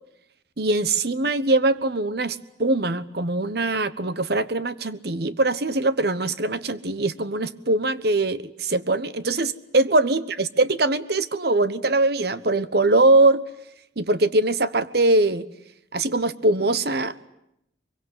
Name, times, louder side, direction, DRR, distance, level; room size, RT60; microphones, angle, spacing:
voice 1, 0.6-13.4 14.0-15.5 15.9-17.3, right 2 dB, 55° right, 15 dB, 1.1 m, -22 dB
23.5 x 23.0 x 9.7 m, 0.80 s
head